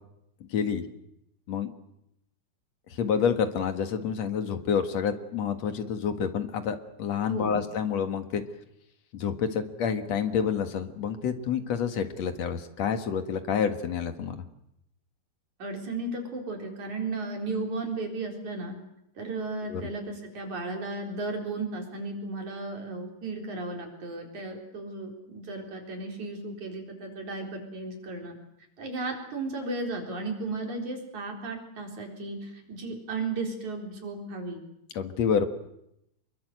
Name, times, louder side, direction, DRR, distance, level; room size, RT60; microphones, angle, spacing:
voice 1, 0.5-0.8 1.5-1.7 2.9-8.4 9.1-14.4 19.7-19.8 34.9-35.5, left 7 dB, 55° left, 8 dB, 2.3 m, -28 dB
voice 2, 7.3-7.6 15.6-18.8 19.2-28.4 28.8-34.6, right 3 dB, 50° right, 2 dB, 5.4 m, -35 dB
26.5 x 23.0 x 8.0 m, 0.80 s
omnidirectional pair, 4.5 m